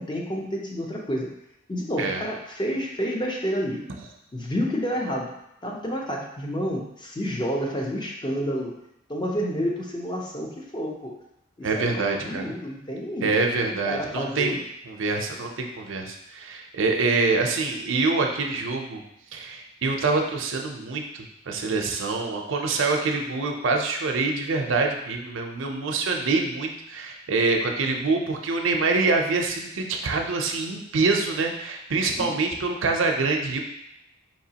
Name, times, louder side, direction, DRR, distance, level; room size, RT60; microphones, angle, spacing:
voice 1, 0.0-1.3 1.7-3.8 4.3-5.3 5.6-8.7 9.1-11.1 11.6-13.3 13.9-14.6 32.2-32.4, equal, 25° left, -1 dB, 0.6 m, -29 dB
voice 2, 11.6-12.4 13.2-19.0 19.3-33.6, right 3 dB, 70° right, 2 dB, 0.6 m, -25 dB
4.6 x 3.0 x 2.8 m, 0.80 s
head